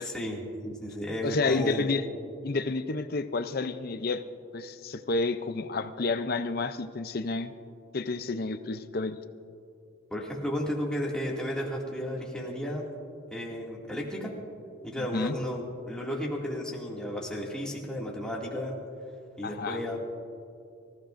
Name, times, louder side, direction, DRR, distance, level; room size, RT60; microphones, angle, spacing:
voice 1, 0.0-1.9 10.1-12.9 13.3-14.3 14.8-18.8 19.4-20.0, equal, 5° left, -4 dB, 2.2 m, -33 dB
voice 2, 1.2-2.0 2.4-4.2 4.5-7.5 7.9-9.2 15.0-15.3 19.4-19.8, left 3 dB, 50° left, 11 dB, 0.5 m, -30 dB
25.5 x 15.0 x 2.6 m, 2.6 s
head